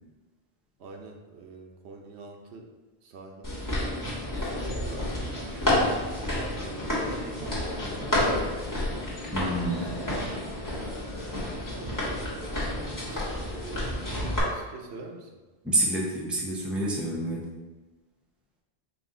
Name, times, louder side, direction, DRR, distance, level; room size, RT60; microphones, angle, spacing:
voice 1, 0.8-2.7 3.0-3.7 4.3-8.9 9.6-12.3 13.0-15.3, right 3 dB, 85° right, 3 dB, 0.9 m, -46 dB
sound 1, 3.4-14.4, left 1 dB, 20° left, 1.3 m, -30 dB
voice 2, 9.3-9.8 15.6-17.5, right 2 dB, ahead, -3 dB, 0.5 m, -28 dB
5.5 x 2.5 x 3.7 m, 1.2 s
omnidirectional pair, 1.1 m